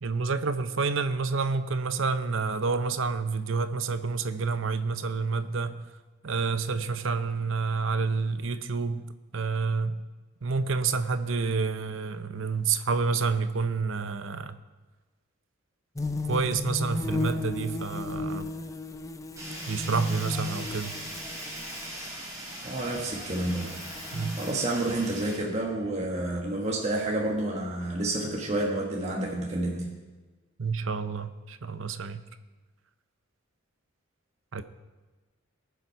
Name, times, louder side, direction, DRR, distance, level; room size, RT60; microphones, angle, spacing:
voice 1, 0.0-5.8 6.2-9.0 9.3-10.0 10.4-14.6 16.3-18.5 19.7-20.9 24.1-24.4 30.6-32.2 34.5-34.6, right 4 dB, 65° right, 0.7 m, -29 dB
sound 1, 16.0-22.1 22.7-24.5, left 2 dB, 15° left, 0.5 m, -35 dB
Fire, 19.4-25.4, right 1 dB, 15° right, 4.1 m, -40 dB
voice 2, 22.6-23.8 24.4-29.9, right 1 dB, 30° right, 1.3 m, -29 dB
20.0 x 7.1 x 4.6 m
head